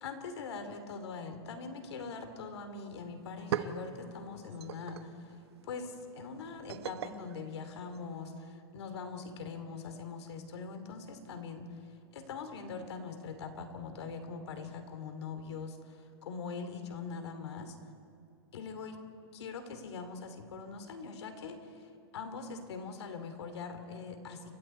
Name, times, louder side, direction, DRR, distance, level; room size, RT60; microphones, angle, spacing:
voice 1, 0.0-5.3 5.6-11.7 12.1-17.7 18.5-19.0 19.3-21.9 22.1-24.5, left 5 dB, 85° left, 8 dB, 2.9 m, -42 dB
sound 1, 2.8-2.9 3.2-8.4, right 9 dB, 75° right, 1.1 m, -42 dB
29.5 x 23.5 x 4.5 m, 2.5 s
supercardioid pair, 170°, 14 cm